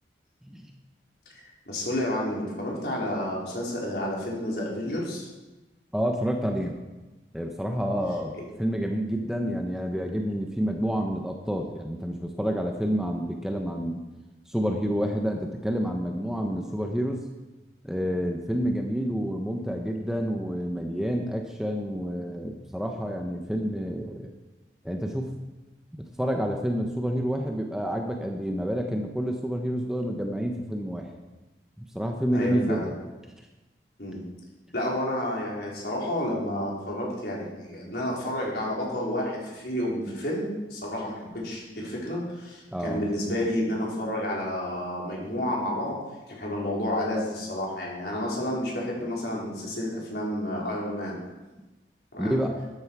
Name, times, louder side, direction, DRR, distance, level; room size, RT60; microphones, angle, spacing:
voice 1, 1.7-5.3 8.3-8.4 32.3-32.9 34.0-34.3 34.7-46.0 46.3-51.2 52.1-52.4, left 1 dB, 65° left, -4 dB, 4.2 m, -30 dB
voice 2, 5.9-6.8 7.3-8.3 8.6-14.0 14.5-17.2 17.8-24.3 24.8-25.3 25.9-31.1 31.8-33.0 42.7-43.1 52.2-52.6, equal, 5° right, 2 dB, 0.8 m, -29 dB
13.0 x 10.0 x 4.7 m, 1.1 s
head